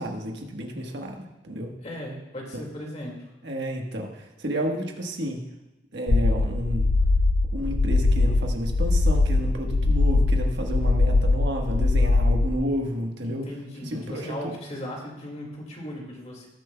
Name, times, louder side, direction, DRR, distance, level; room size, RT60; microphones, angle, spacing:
voice 1, 0.0-1.7 2.5-2.6 3.4-5.4 5.9-6.9 7.5-13.4 13.8-14.5, equal, 65° right, 2 dB, 1.3 m, -31 dB
voice 2, 1.8-3.1 13.2-16.5, equal, 40° left, -1 dB, 2.0 m, -37 dB
sound 1, 6.1-12.5, left 2 dB, 60° left, 0.5 m, -21 dB
19.0 x 7.5 x 2.2 m, 0.96 s
head